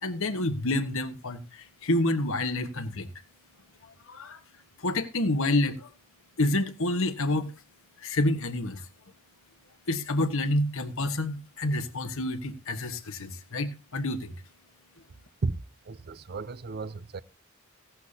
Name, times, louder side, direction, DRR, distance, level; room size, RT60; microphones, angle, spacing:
voice 1, 0.0-3.1 3.8-4.4 4.8-5.9 6.4-7.5 8.0-8.9 9.9-14.4, left 1 dB, 70° left, 1.4 m, -28 dB
voice 2, 15.4-17.2, right 3 dB, 50° right, 0.6 m, -34 dB
16.5 x 11.5 x 2.8 m
head